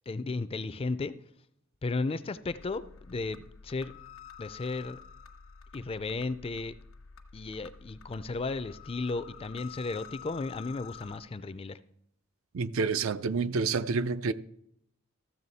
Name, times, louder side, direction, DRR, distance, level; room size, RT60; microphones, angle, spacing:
voice 1, 0.1-1.1 1.8-3.9 4.4-5.0 5.7-6.7 7.3-11.8, left 3 dB, 25° left, 0.4 m, -34 dB
sound 1, 2.5-11.2, left 7 dB, 70° left, 0.9 m, -50 dB
voice 2, 12.5-14.3, right 4 dB, 70° right, 0.5 m, -28 dB
13.5 x 7.2 x 4.1 m
head